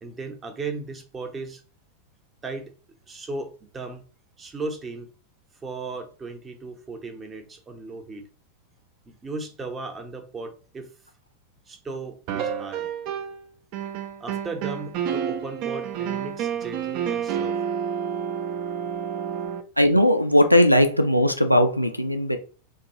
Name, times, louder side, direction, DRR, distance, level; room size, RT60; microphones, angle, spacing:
voice 1, 0.0-1.6 2.4-2.7 3.1-4.0 4.4-5.1 5.6-8.3 9.1-10.9 11.7-12.9 14.2-17.6, right 3 dB, 20° right, 0.7 m, -36 dB
sound 1, 12.3-13.4 13.7-19.6, right 8 dB, 40° right, 0.4 m, -29 dB
voice 2, 19.8-22.4, left 1 dB, 90° left, 0.4 m, -18 dB
2.9 x 2.3 x 2.7 m
figure-of-eight pair, 90°, 0 cm